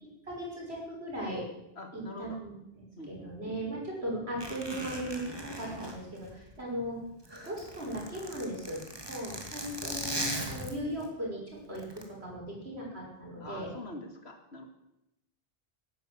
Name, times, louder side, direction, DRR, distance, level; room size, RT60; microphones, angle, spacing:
voice 1, 0.3-1.4 1.9-2.5 3.1-5.3 5.6-7.0 7.4-8.8 9.1-11.4 11.7-13.7, right 1 dB, 90° right, -3 dB, 6.2 m, -37 dB
voice 2, 1.8-2.4 3.0-3.8 13.4-14.7, left 2 dB, 85° left, 5 dB, 2.6 m, -45 dB
Zipper (clothing), 4.4-6.8 7.1-11.1 11.7-12.0, right 1 dB, 25° right, 2.5 m, -39 dB
17.5 x 10.0 x 7.7 m, 0.83 s
omnidirectional pair, 1.1 m